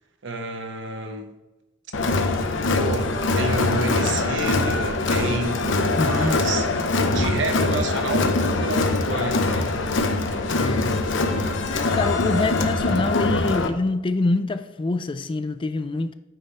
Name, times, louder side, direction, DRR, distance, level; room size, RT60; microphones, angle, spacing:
voice 1, 0.2-1.3 2.8-6.7 7.0-9.8, right 2 dB, 70° right, 1.0 m, -29 dB
Crowd, 1.9-13.7, left 3 dB, 70° left, 0.7 m, -23 dB
voice 2, 6.0-6.4 10.5-10.9 11.7-16.1, left 3 dB, 25° left, 0.4 m, -25 dB
9.1 x 3.5 x 5.4 m
head